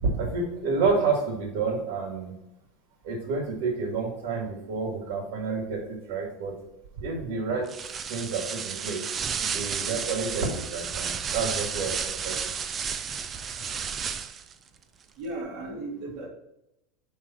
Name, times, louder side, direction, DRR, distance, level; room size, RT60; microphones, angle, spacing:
voice 1, 0.0-2.3 3.0-6.5 7.0-7.7 8.1-9.0 9.5-12.4, right 4 dB, 75° right, -1 dB, 2.4 m, -29 dB
sound 1, 7.7-14.5, right 6 dB, 25° right, 0.4 m, -32 dB
voice 2, 15.2-16.3, right 2 dB, 50° right, -4 dB, 3.0 m, -36 dB
9.3 x 3.5 x 4.6 m, 0.85 s
supercardioid pair, 155°, 0 cm